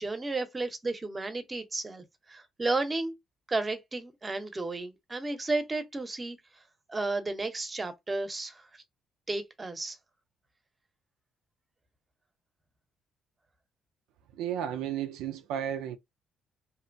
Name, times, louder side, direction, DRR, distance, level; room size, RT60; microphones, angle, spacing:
voice 1, 0.0-3.1 3.5-6.4 6.9-8.8 9.3-10.0, right 2 dB, 25° right, 0.7 m, -33 dB
voice 2, 14.4-16.0, right 10 dB, 85° right, 0.3 m, -33 dB
2.8 x 2.1 x 2.5 m
supercardioid pair, 70°, 0 cm